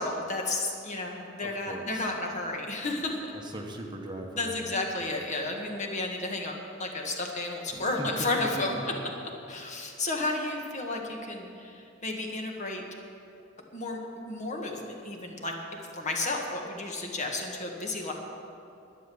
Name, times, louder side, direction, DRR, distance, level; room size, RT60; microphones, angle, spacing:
voice 1, 0.0-3.2 4.4-6.5 6.8-8.7 9.5-12.8 13.7-14.0 14.2-15.5 15.9-18.1, left 2 dB, 35° left, 1 dB, 1.5 m, -32 dB
voice 2, 1.4-2.2 3.3-4.8 7.7-9.2, right 1 dB, 20° right, 2 dB, 1.0 m, -40 dB
11.5 x 10.5 x 7.0 m, 2.7 s
head